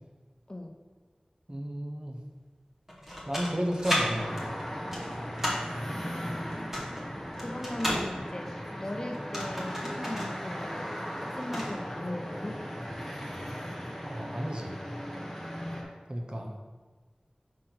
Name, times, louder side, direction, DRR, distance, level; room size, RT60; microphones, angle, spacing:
voice 1, 1.5-2.2 3.3-4.6 14.0-14.8 16.1-16.6, equal, 35° right, 2 dB, 1.0 m, -33 dB
sound 1, 2.9-4.0 4.4-5.7 6.5-8.0 9.1-10.4 10.6-10.7 11.1-11.8, equal, 15° right, 1.9 m, -33 dB
sound 2, 4.2-15.8, equal, 5° left, 1.6 m, -37 dB
voice 2, 7.4-8.5 8.8-10.9 11.4-12.7, left 1 dB, 35° left, 3 dB, 0.8 m, -38 dB
6.3 x 4.2 x 6.0 m, 1.4 s
wide cardioid pair, 45°, 2 cm